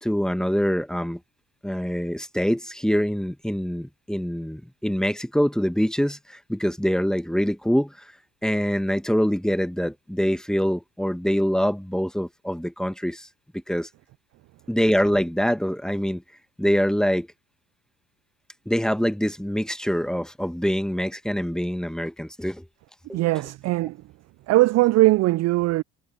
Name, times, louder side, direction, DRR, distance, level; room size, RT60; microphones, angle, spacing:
voice 1, 0.0-1.2 1.6-8.1 8.4-13.3 13.5-13.9 14.7-16.2 16.6-17.3 18.6-22.6 23.1-23.2, equal, ahead, 1.6 m, -24 dB
voice 2, 23.1-24.0 24.5-25.8, right 18 dB, 40° right, 0.4 m, -20 dB
hypercardioid pair, 60°, 45 cm